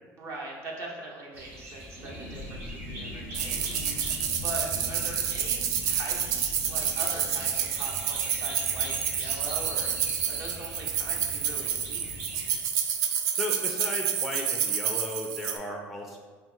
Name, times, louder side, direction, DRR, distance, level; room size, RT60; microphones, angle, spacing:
voice 1, 0.2-12.1, right 2 dB, 50° right, -2 dB, 1.0 m, -41 dB
sound 1, 1.3-12.6, equal, 30° right, 1.3 m, -42 dB
sound 2, 1.9-11.4 11.6-11.7 12.0-12.3, left 1 dB, 90° right, 1.1 m, -44 dB
sound 3, 3.3-15.6, right 8 dB, 70° right, 0.4 m, -29 dB
voice 2, 13.3-16.2, left 1 dB, ahead, 0 dB, 0.4 m, -35 dB
4.5 x 2.6 x 3.5 m, 1.5 s
cardioid pair, 115°, 7 cm